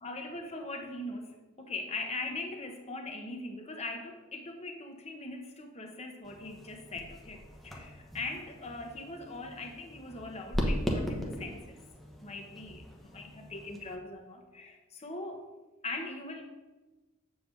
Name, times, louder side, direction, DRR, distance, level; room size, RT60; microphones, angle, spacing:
voice 1, 0.0-11.8 12.2-15.4 15.8-16.4, left 2 dB, 30° left, 3 dB, 0.9 m, -41 dB
sound 1, 6.2-14.0, equal, ahead, 1.0 m, -38 dB
7.8 x 7.2 x 3.2 m, 1.2 s
head